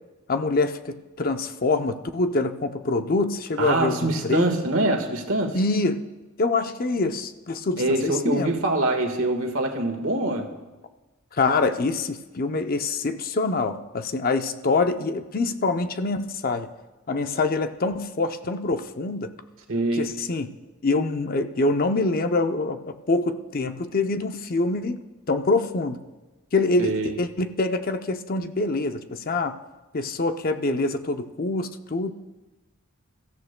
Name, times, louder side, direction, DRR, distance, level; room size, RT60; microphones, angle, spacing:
voice 1, 0.3-4.5 5.5-6.0 6.4-8.5 11.3-16.7 17.1-19.3 20.0-20.5 20.8-25.0 25.3-26.0 26.5-29.6 29.9-32.1, left 3 dB, 40° left, 8 dB, 0.6 m, -25 dB
voice 2, 3.6-5.6 7.8-10.5 19.7-20.2 26.8-27.2, right 2 dB, 65° right, 4 dB, 1.5 m, -24 dB
26.5 x 14.5 x 2.2 m, 1.1 s
head